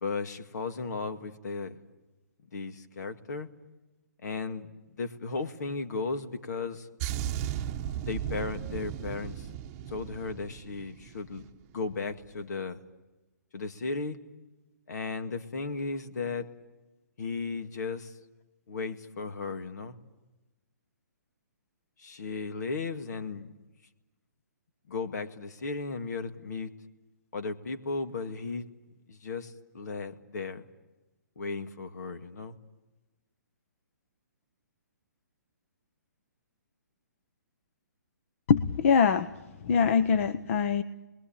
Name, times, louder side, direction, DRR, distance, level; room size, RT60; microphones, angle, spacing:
voice 1, 0.0-1.8 2.5-3.5 4.2-6.9 8.1-9.5 9.9-11.5 11.7-12.8 13.5-14.2 14.9-16.5 17.2-18.1 18.7-20.0 22.0-23.5 24.9-26.7 27.3-28.7 29.1-30.7 31.4-32.6, left 4 dB, 65° left, 8 dB, 2.1 m, -35 dB
sound 1, 7.0-11.6 11.8-12.1, right 10 dB, 25° right, 1.0 m, -36 dB
voice 2, 38.5-39.3 39.6-40.8, left 6 dB, 45° left, 12 dB, 0.9 m, -23 dB
29.5 x 21.5 x 8.9 m, 1.1 s
hypercardioid pair, 150°, 10 cm